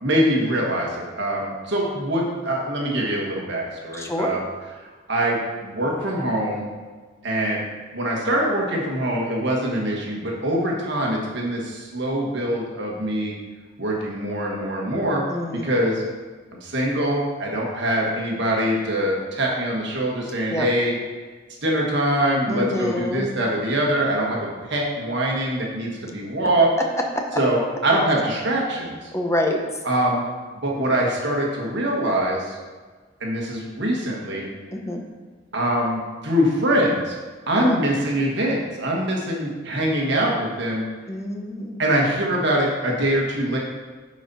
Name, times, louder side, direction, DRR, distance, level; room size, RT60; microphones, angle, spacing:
voice 1, 0.0-4.4 5.1-6.7 7.2-7.7 7.9-13.3 13.8-15.2 15.5-16.0 16.6-20.9 21.6-26.7 27.4-29.1 29.8-30.3 30.5-32.6 33.2-34.4 35.5-37.2 37.5-40.9 41.8-43.6, right 1 dB, 65° right, -2 dB, 1.5 m, -23 dB
voice 2, 3.9-4.3 15.3-15.7 20.5-20.7 22.5-23.3 27.1-27.4 29.1-29.6 34.7-35.0 37.6-37.8 41.1-41.8, left 1 dB, 15° left, 2 dB, 0.8 m, -26 dB
9.1 x 4.2 x 4.1 m, 1.4 s
head